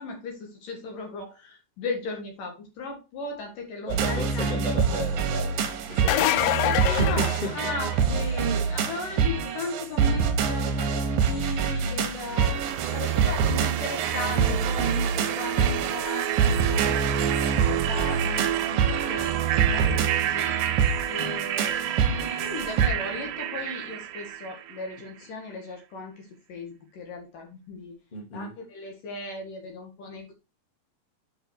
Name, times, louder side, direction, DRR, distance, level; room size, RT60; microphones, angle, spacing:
voice 1, 0.0-4.5 6.2-20.8 21.1-28.0 28.3-30.3, left 3 dB, 60° left, 3.1 m, -36 dB
voice 2, 3.9-6.7 7.0-7.6 28.1-28.6, left 2 dB, 15° left, 1.9 m, -34 dB
sound 1, 3.9-22.9, right 6 dB, 65° right, 2.6 m, -26 dB
sound 2, 5.9-8.1 13.7-13.8 15.6-15.7, left 14 dB, 85° left, 2.3 m, -26 dB
sound 3, 12.2-25.1, right 11 dB, 85° right, 3.2 m, -30 dB
8.4 x 6.2 x 4.7 m
omnidirectional pair, 5.0 m